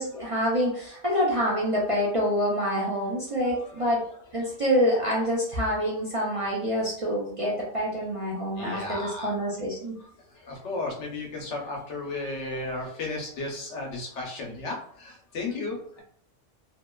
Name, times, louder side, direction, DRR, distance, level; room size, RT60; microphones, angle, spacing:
voice 1, 0.0-4.0 4.3-9.9, equal, 45° right, -6 dB, 0.4 m, -26 dB
voice 2, 1.4-1.8 3.5-5.1 6.6-6.7 8.5-9.3 10.0-16.0, left 2 dB, 80° left, 0 dB, 1.0 m, -35 dB
2.7 x 2.1 x 2.2 m, 0.63 s
omnidirectional pair, 1.2 m